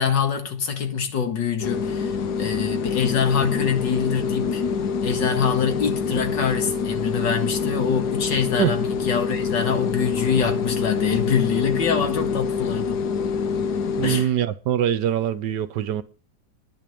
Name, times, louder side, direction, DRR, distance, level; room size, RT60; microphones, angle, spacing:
voice 1, 0.0-4.6 5.0-13.1 14.0-14.3, left 7 dB, 85° left, 2.3 m, -24 dB
sound 1, 1.6-14.3, left 5 dB, 70° left, 1.4 m, -26 dB
voice 2, 14.0-16.0, right 10 dB, 75° right, 1.4 m, -23 dB
10.0 x 6.3 x 8.5 m
omnidirectional pair, 1.9 m